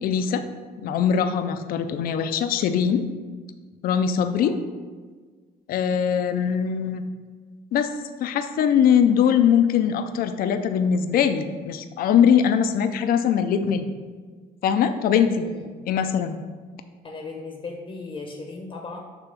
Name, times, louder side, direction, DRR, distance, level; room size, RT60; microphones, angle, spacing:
voice 1, 0.0-0.4 0.8-3.1 3.8-4.5 5.7-7.0 7.7-7.9 8.2-13.9 14.6-16.4, left 8 dB, 60° left, 9 dB, 0.5 m, -21 dB
voice 2, 15.4-15.7 17.0-19.0, left 3 dB, 30° left, 2 dB, 0.8 m, -37 dB
6.9 x 3.0 x 5.7 m, 1.5 s
cardioid pair, 110°, 17 cm